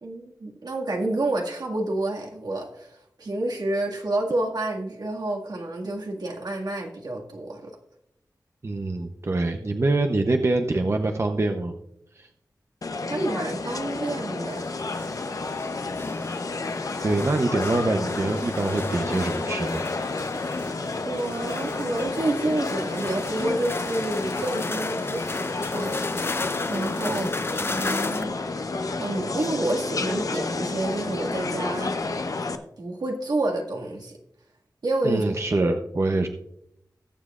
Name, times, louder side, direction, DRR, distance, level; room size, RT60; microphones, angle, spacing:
voice 1, 0.0-7.7 13.0-14.7 21.1-26.4 26.7-28.4 29.0-31.9 32.8-34.2 34.8-35.2 35.6-35.7, right 2 dB, 75° right, 0 dB, 2.0 m, -29 dB
voice 2, 8.6-11.7 12.2-12.3 17.0-19.9 35.0-36.3, right 2 dB, 40° right, 5 dB, 0.7 m, -25 dB
sound 1, 12.8-32.6, left 3 dB, 55° left, 0.8 m, -31 dB
sound 2, 14.5-28.2, left 3 dB, 35° left, 0.5 m, -34 dB
19.5 x 7.3 x 2.4 m, 0.78 s
wide cardioid pair, 90°, 7 cm